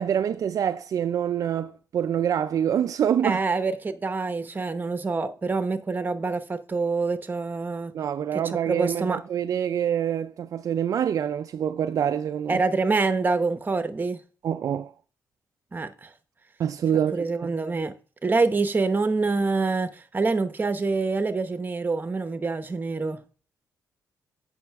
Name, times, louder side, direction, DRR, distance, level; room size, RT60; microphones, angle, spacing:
voice 1, 0.0-3.4 7.9-12.6 14.4-14.9 16.6-17.3, right 9 dB, 55° right, 0.3 m, -26 dB
voice 2, 3.2-7.9 8.3-8.4 8.7-9.2 12.5-14.2 15.7-16.1 17.1-17.9 18.2-23.2, right 3 dB, 25° right, 0.8 m, -26 dB
8.7 x 5.5 x 3.4 m
cardioid pair, 90°, 7 cm